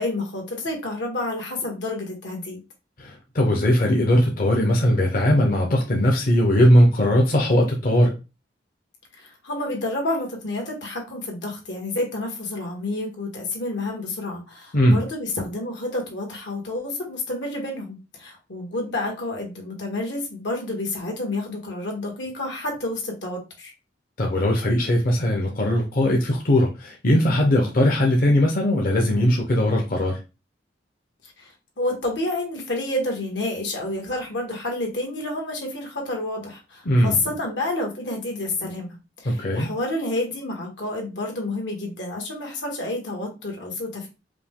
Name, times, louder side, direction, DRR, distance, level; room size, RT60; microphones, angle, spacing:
voice 1, 0.0-2.6 9.1-23.7 31.2-44.1, left 2 dB, 85° left, 1 dB, 1.6 m, -29 dB
voice 2, 3.0-8.2 14.7-15.0 24.2-30.2 36.9-37.2 39.2-39.7, equal, 55° left, 0 dB, 0.7 m, -19 dB
4.9 x 2.2 x 3.6 m, 0.28 s
head